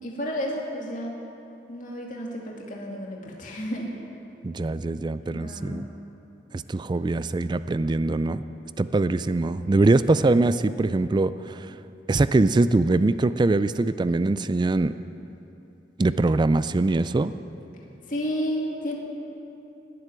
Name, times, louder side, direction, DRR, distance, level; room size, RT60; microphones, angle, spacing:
voice 1, 0.0-1.2 1.7-3.9 5.3-5.8 18.1-18.9, equal, 50° left, -2 dB, 2.3 m, -31 dB
voice 2, 4.4-5.9 6.5-8.4 8.8-11.7 12.1-14.9 16.0-17.3, right 2 dB, 25° right, 13 dB, 0.3 m, -22 dB
18.0 x 7.8 x 9.8 m, 2.8 s
head